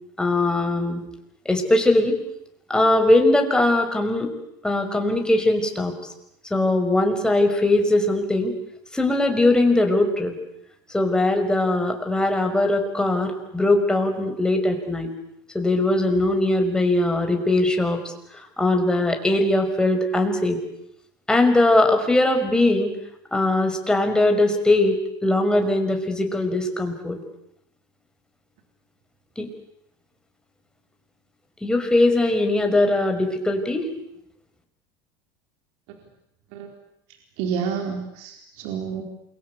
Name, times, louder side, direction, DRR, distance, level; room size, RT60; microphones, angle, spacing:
voice 1, 0.2-1.0 1.5-2.2 2.7-4.3 4.6-5.9 6.5-8.6 8.9-10.3 10.9-15.1 15.5-20.6 21.3-22.9 23.3-27.2 29.4-29.5 31.6-33.9, left 2 dB, 5° left, 4 dB, 5.5 m, -20 dB
voice 2, 37.4-39.0, right 6 dB, 70° right, 4 dB, 4.4 m, -29 dB
28.0 x 23.5 x 8.5 m, 0.79 s
supercardioid pair, 105°, 11 cm